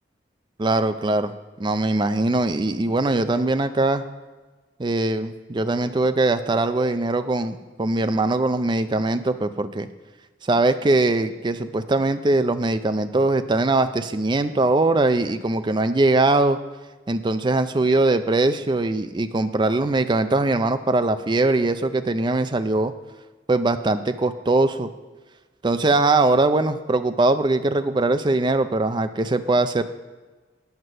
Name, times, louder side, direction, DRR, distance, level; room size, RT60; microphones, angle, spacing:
voice 1, 0.6-1.3 1.6-4.0 4.8-9.9 10.4-16.6 17.1-22.9 23.5-24.9 25.6-29.8, right 2 dB, 25° right, 10 dB, 0.4 m, -21 dB
9.3 x 8.0 x 6.5 m, 1.3 s
head